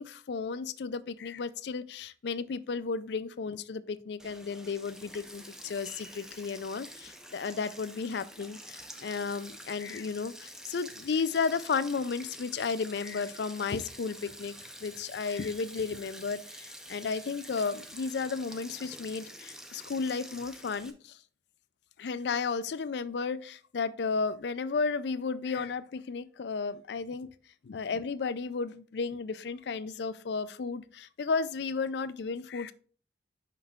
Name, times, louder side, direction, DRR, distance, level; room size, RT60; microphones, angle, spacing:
voice 1, 0.0-21.2 22.0-27.3 27.6-32.7, left 5 dB, 75° left, 0.4 m, -33 dB
Sink (filling or washing), 4.2-20.9, equal, 5° right, 0.5 m, -48 dB
5.7 x 5.4 x 3.5 m
head